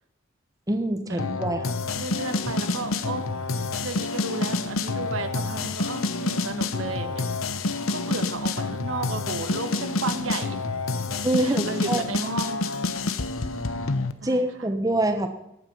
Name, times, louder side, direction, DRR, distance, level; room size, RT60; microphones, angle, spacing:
voice 1, 0.7-1.6 11.2-12.0 14.2-15.3, right 1 dB, 15° right, 6 dB, 1.1 m, -25 dB
sound 1, 1.2-14.1, left 3 dB, 80° left, 1.0 m, -28 dB
voice 2, 1.9-3.2 3.8-7.3 7.9-10.6 11.4-12.6 14.2-14.7, right 3 dB, 70° right, 8 dB, 1.5 m, -33 dB
19.0 x 9.0 x 5.5 m, 0.83 s
head